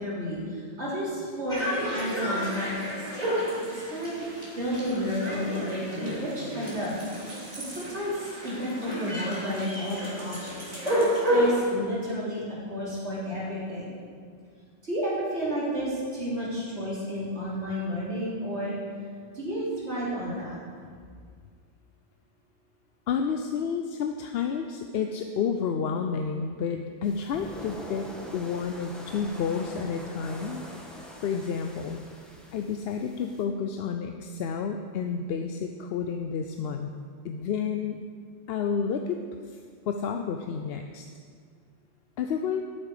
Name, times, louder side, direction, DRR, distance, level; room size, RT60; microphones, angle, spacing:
voice 1, 0.0-3.0 3.3-3.4 3.7-4.1 4.6-12.4 12.7-13.9 14.8-18.7 19.3-20.6, equal, 75° right, -8 dB, 3.6 m, -32 dB
sound 1, 1.5-11.6, equal, 35° right, 2.9 m, -31 dB
voice 2, 23.1-30.6 30.9-32.0 32.5-36.9 37.2-38.0 38.5-39.2 39.5-39.6 39.9-41.1 42.2-42.6, left 6 dB, 70° left, 5 dB, 0.8 m, -30 dB
sound 2, 27.0-33.4, equal, ahead, 1.2 m, -44 dB
12.0 x 8.7 x 4.9 m, 2.1 s
omnidirectional pair, 1.1 m